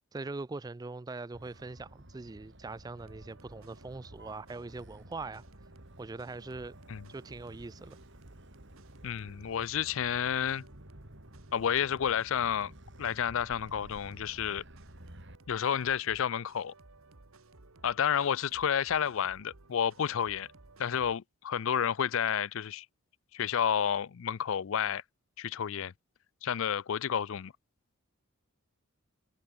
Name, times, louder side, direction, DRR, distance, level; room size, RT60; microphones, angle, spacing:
voice 1, 0.1-5.4 6.0-6.7 7.1-8.0, right 3 dB, 15° right, 0.3 m, -42 dB
Motor vehicle (road), 1.3-15.4, right 1 dB, 55° right, 4.9 m, -53 dB
sound 1, 3.0-21.2, right 2 dB, 75° right, 1.7 m, -58 dB
voice 2, 9.0-10.6 11.5-14.6 15.5-16.7 17.8-20.5 20.8-22.9 23.3-25.0 25.4-25.9 26.4-27.5, left 8 dB, 65° left, 0.4 m, -30 dB
head